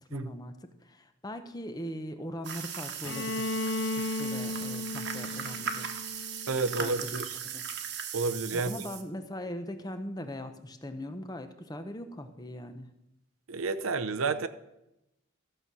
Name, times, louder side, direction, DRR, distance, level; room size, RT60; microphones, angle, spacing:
voice 1, 0.1-0.6 0.8-3.5 3.8-5.9 6.8-7.2 7.5-7.7 8.5-12.9, left 1 dB, 20° left, 8 dB, 0.8 m, -40 dB
sound 1, 2.4-9.0, right 7 dB, 55° right, 1.2 m, -38 dB
Bowed string instrument, 3.0-6.9, left 2 dB, 90° left, 0.9 m, -35 dB
voice 2, 6.5-7.4 8.1-8.7 13.5-14.5, right 4 dB, 80° right, 11 dB, 0.7 m, -30 dB
14.0 x 7.0 x 6.1 m, 0.88 s
head